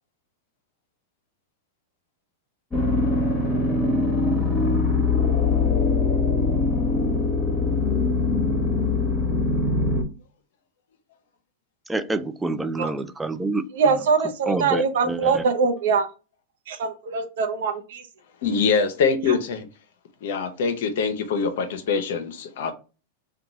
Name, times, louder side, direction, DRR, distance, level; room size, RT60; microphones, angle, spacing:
sound 1, 2.7-10.0, left 3 dB, 15° left, 1.3 m, -22 dB
voice 1, 11.9-14.1 14.5-15.5, right 2 dB, 10° right, 0.3 m, -28 dB
voice 2, 13.8-16.1 16.7-18.0, right 5 dB, 70° right, 0.7 m, -23 dB
voice 3, 18.4-19.7 20.2-22.7, left 5 dB, 70° left, 0.7 m, -24 dB
2.8 x 2.2 x 3.7 m
hypercardioid pair, 110°, 0 cm